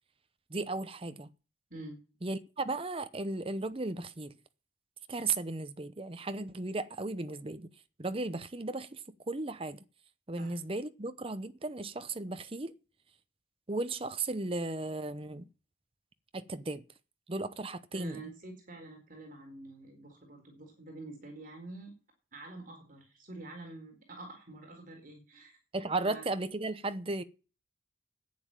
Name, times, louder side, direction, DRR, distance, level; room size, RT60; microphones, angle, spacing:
voice 1, 0.5-1.3 2.2-4.3 5.1-7.7 8.0-9.0 9.3-9.8 10.3-12.7 13.7-15.5 16.3-16.8 17.3-18.2 25.7-27.2, right 2 dB, 30° right, 0.8 m, -35 dB
voice 2, 17.9-21.9 22.3-25.6 26.0-26.2, right 2 dB, 45° right, 4.2 m, -47 dB
10.5 x 9.4 x 8.9 m
head